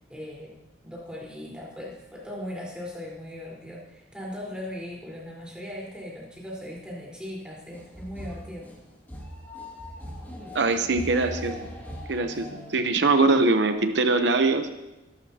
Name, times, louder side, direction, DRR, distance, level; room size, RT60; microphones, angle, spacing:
voice 1, 0.1-0.5 0.8-8.7, left 1 dB, 5° right, -4 dB, 4.2 m, -38 dB
sound 1, 7.7-12.7, equal, 10° left, 2.3 m, -39 dB
voice 2, 10.5-11.6 12.1-14.7, right 3 dB, 65° right, 7 dB, 0.9 m, -22 dB
21.5 x 12.0 x 2.9 m, 1.0 s
head